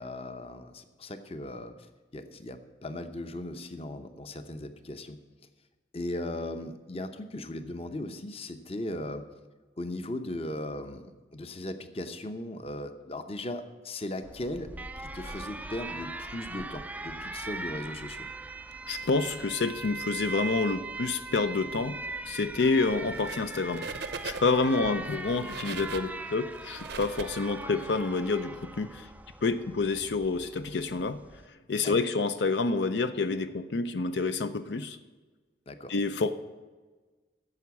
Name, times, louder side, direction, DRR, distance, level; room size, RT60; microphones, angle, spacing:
voice 1, 0.0-1.7 2.1-5.2 5.9-9.2 9.8-14.7 15.1-18.3 24.8-25.0 31.8-32.0 35.7-35.9, left 1 dB, 35° left, 9 dB, 0.7 m, -37 dB
Alarm, 14.2-31.5, right 3 dB, 10° right, 0.3 m, -40 dB
voice 2, 18.9-22.0 22.3-23.9 24.2-29.1 29.4-31.2 31.7-35.0 35.9-36.3, left 3 dB, 75° left, 11 dB, 0.6 m, -28 dB
sound 1, 23.1-23.5 23.7-24.7 25.2-27.9, right 5 dB, 70° right, 0.7 m, -40 dB
10.5 x 7.0 x 8.4 m, 1.3 s
head